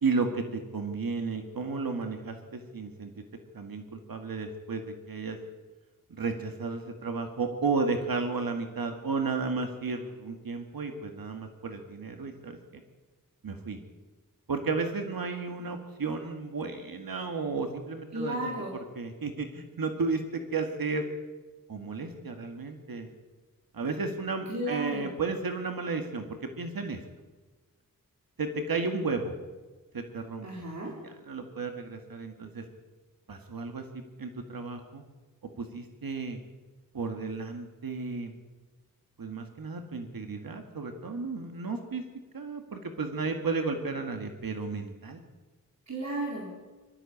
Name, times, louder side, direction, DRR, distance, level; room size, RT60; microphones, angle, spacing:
voice 1, 0.0-3.1 3.5-5.4 6.1-12.6 13.4-13.8 14.5-18.5 19.0-21.0 21.7-23.1 23.7-26.2 26.6-27.0 28.4-29.4 29.9-30.5 31.0-32.6 33.3-33.8 34.2-35.0 35.6-36.4 36.9-38.3 39.2-42.0 42.3-45.2, right 4 dB, 80° right, 5 dB, 2.0 m, -33 dB
voice 2, 18.1-18.7 24.5-25.1 30.4-30.9 45.9-46.5, right 1 dB, 50° right, -2 dB, 4.3 m, -34 dB
23.0 x 13.5 x 8.6 m, 1.3 s
wide cardioid pair, 105°, 34 cm